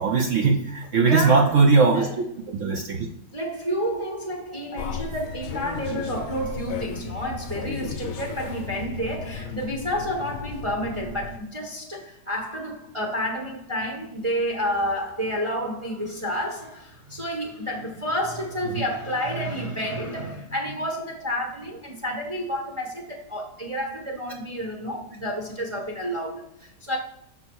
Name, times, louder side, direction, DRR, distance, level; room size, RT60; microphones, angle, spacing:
voice 1, 0.0-2.1 2.5-3.1, right 4 dB, 60° right, 0.9 m, -19 dB
voice 2, 1.0-1.7 1.9-2.2 3.3-27.0, equal, 25° right, 0.7 m, -30 dB
sound 1, 4.7-11.4, left 6 dB, 60° left, 0.8 m, -35 dB
5.9 x 3.8 x 6.1 m
omnidirectional pair, 1.7 m